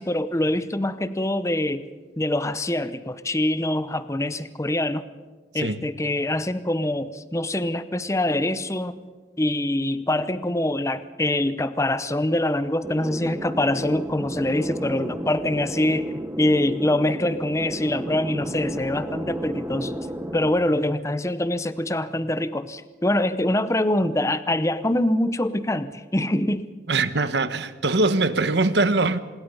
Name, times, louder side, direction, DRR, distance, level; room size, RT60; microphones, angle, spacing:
voice 1, 0.0-1.8 2.2-5.0 5.5-9.0 9.4-16.1 16.4-19.9 20.3-26.7, left 1 dB, 15° left, 0.7 m, -24 dB
sound 1, 12.8-20.5, right 1 dB, 10° right, 1.0 m, -32 dB
voice 2, 26.9-29.2, right 3 dB, 70° right, 1.1 m, -22 dB
26.0 x 21.0 x 5.5 m
head